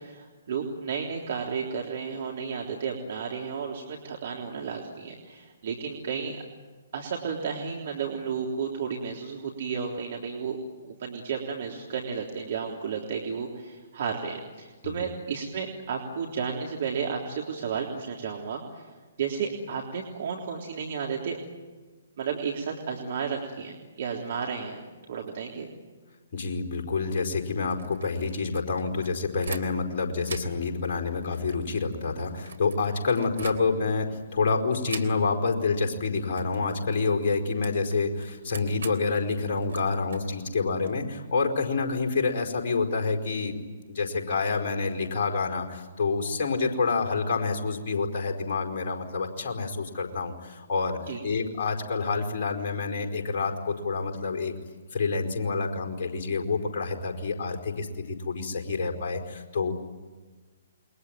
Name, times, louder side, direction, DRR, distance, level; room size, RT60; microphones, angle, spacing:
voice 1, 0.0-6.4 6.9-10.6 10.8-18.9 19.2-21.4 22.2-25.7 51.1-51.2, right 6 dB, 50° right, 0 dB, 3.6 m, -33 dB
voice 2, 26.3-43.5 43.9-54.5 54.9-59.7, left 4 dB, 40° left, 1 dB, 4.9 m, -28 dB
sound 1, 27.5-29.9 30.2-34.0 34.9-35.5 35.8-36.0 36.3-40.9, right 5 dB, 65° right, 3.3 m, -43 dB
29.0 x 22.5 x 9.2 m, 1.3 s
figure-of-eight pair, 125°, 0 cm